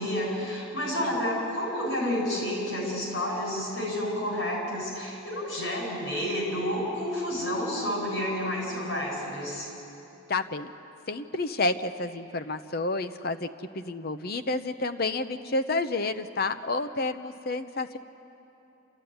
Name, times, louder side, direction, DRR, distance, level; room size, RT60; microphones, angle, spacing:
voice 1, 0.0-9.7, left 1 dB, 65° left, -2 dB, 7.5 m, -30 dB
voice 2, 10.3-10.7 11.1-13.5 13.7-18.0, left 3 dB, 45° left, 10 dB, 0.8 m, -30 dB
28.0 x 14.0 x 9.7 m, 2.9 s
head